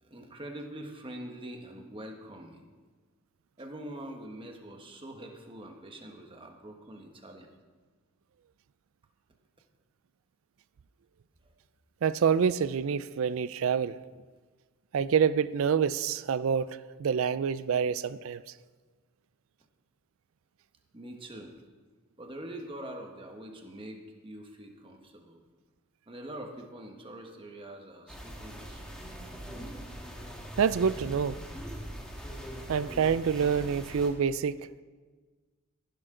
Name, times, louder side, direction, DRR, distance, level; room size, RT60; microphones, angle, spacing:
voice 1, 0.0-2.6 3.6-7.5 20.9-21.5 22.2-24.0 24.2-25.4 26.1-28.8, right 1 dB, 25° right, 1.3 m, -44 dB
voice 2, 12.0-14.0 14.9-18.4 30.6-31.4 32.7-34.6, right 7 dB, 65° right, 0.4 m, -27 dB
sound 1, 28.1-34.1, equal, 5° left, 1.7 m, -42 dB
15.0 x 11.5 x 3.8 m
head